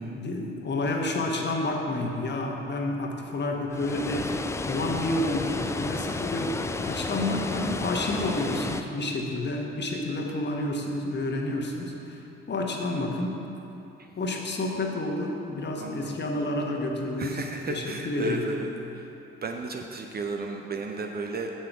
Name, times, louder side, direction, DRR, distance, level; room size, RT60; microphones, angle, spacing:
voice 1, 0.0-13.4 14.2-17.4 17.7-18.5, left 2 dB, 35° left, 1 dB, 1.3 m, -30 dB
Water, 3.7-8.8, left 3 dB, 10° left, 0.4 m, -32 dB
voice 2, 15.8-16.2 17.2-19.1 19.4-21.5, right 3 dB, 30° right, 3 dB, 0.7 m, -34 dB
8.9 x 7.6 x 4.7 m, 2.9 s
figure-of-eight pair, 50°, 32 cm